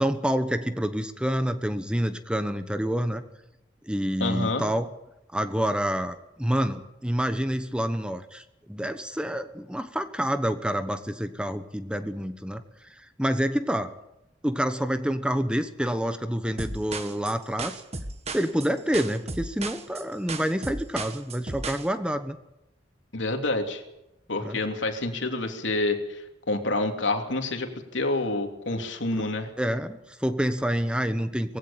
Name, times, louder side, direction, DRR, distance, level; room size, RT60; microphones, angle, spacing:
voice 1, 0.0-3.2 3.8-4.9 5.3-14.0 14.4-17.8 18.3-22.4 24.4-24.6 29.1-29.2 29.6-31.6, equal, 5° right, 10 dB, 1.1 m, -28 dB
voice 2, 4.2-4.6 23.1-23.8 24.3-26.2 26.5-29.5, left 2 dB, 85° left, 4 dB, 3.2 m, -28 dB
sound 1, 16.6-21.9, right 3 dB, 35° right, 1.7 m, -35 dB
21.0 x 16.0 x 8.8 m, 0.91 s
head